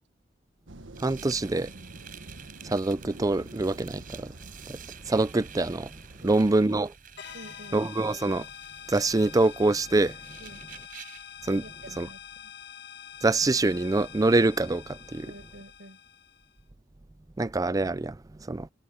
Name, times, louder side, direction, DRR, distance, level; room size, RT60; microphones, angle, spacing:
sound 1, 0.7-6.5, right 2 dB, 85° right, 1.4 m, -48 dB
sound 2, 0.9-11.3, right 9 dB, 50° right, 4.4 m, -50 dB
voice 1, 1.0-1.7 2.6-4.4 4.7-4.8 5.1-5.9 6.2-6.9 7.7-8.5 8.9-10.2 11.4-11.6 12.0-12.1 13.2-15.3 17.4-18.7, right 2 dB, 20° right, 0.4 m, -25 dB
sound 3, 7.2-16.6, left 9 dB, 60° left, 1.5 m, -46 dB
voice 2, 7.3-7.8 10.4-10.6 11.6-12.5 15.2-16.0, right 1 dB, 65° right, 8.0 m, -48 dB
head